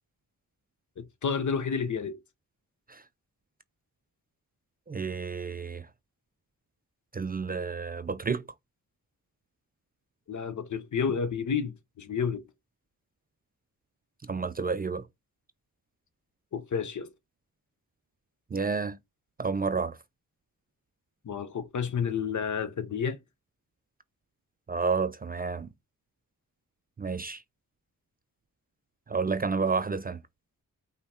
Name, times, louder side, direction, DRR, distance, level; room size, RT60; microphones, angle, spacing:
voice 1, 1.0-2.2 10.3-12.5 16.5-17.1 21.2-23.2, left 6 dB, 60° left, 0.8 m, -30 dB
voice 2, 4.9-5.9 7.1-8.4 14.2-15.1 18.5-19.0 19.4-20.0 24.7-25.7 27.0-27.4 29.1-30.2, right 4 dB, 30° right, 0.3 m, -30 dB
5.5 x 2.2 x 4.2 m
wide cardioid pair, 85°, 34 cm